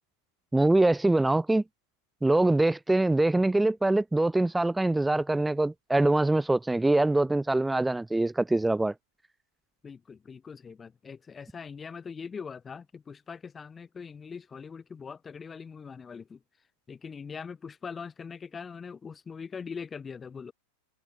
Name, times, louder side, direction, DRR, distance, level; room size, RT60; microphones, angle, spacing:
voice 1, 0.5-1.6 2.2-8.9, right 2 dB, 5° right, 0.9 m, -24 dB
voice 2, 9.8-16.4 16.9-20.5, left 6 dB, 15° left, 5.8 m, -42 dB
figure-of-eight pair, 90°, 0 cm